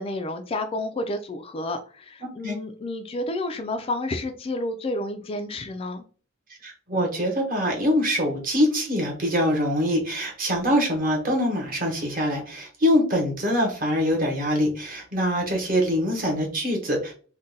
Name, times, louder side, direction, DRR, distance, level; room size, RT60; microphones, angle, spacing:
voice 1, 0.0-6.0, left 2 dB, 30° left, 6 dB, 0.3 m, -30 dB
voice 2, 2.2-2.6 6.6-17.1, equal, 45° right, 1 dB, 1.0 m, -24 dB
2.6 x 2.2 x 3.8 m, 0.40 s
head